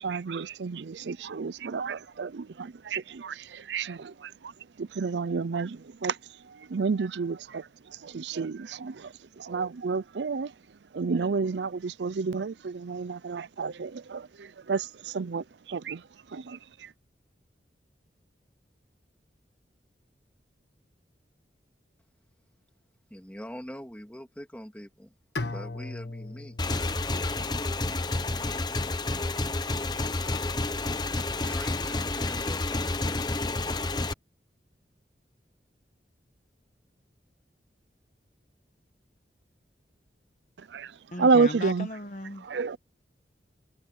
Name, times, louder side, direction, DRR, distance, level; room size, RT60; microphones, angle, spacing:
voice 1, 0.0-4.5 4.8-6.2 6.5-7.7 8.0-10.5 10.9-16.0 16.3-16.9 40.7-40.9 41.2-41.9 42.4-42.8, right 4 dB, 80° right, 0.5 m, -30 dB
voice 2, 23.1-25.1 25.4-26.6 31.4-33.3, equal, 10° left, 2.8 m, -43 dB
Bowed string instrument, 25.4-28.4, left 2 dB, 80° left, 1.2 m, -39 dB
Motorcycle / Engine, 26.6-34.1, left 2 dB, 25° left, 0.9 m, -29 dB
voice 3, 41.1-42.5, left 1 dB, 45° left, 1.3 m, -37 dB
head